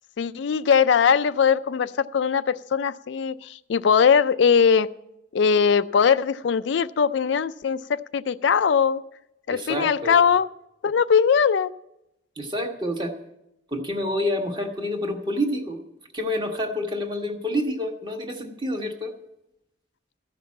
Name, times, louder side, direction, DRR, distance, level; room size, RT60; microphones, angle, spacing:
voice 1, 0.2-4.9 5.3-9.0 9.5-10.5 10.8-11.7, left 6 dB, 65° left, 14 dB, 0.4 m, -20 dB
voice 2, 9.5-10.2 12.4-13.1 13.7-15.8 16.1-19.1, left 1 dB, 25° right, 3 dB, 1.3 m, -28 dB
14.0 x 5.9 x 8.4 m, 0.87 s
head